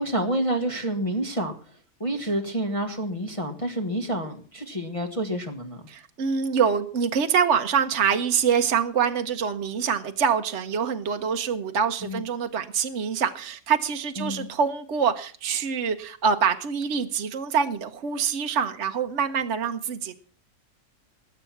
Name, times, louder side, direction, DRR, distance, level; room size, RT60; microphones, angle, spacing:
voice 1, 0.0-5.8 12.0-12.2 14.2-14.5, right 1 dB, 20° left, 1 dB, 1.5 m, -29 dB
voice 2, 5.9-20.2, right 7 dB, 50° right, 6 dB, 1.2 m, -25 dB
20.0 x 8.3 x 5.9 m, 0.43 s
omnidirectional pair, 1.6 m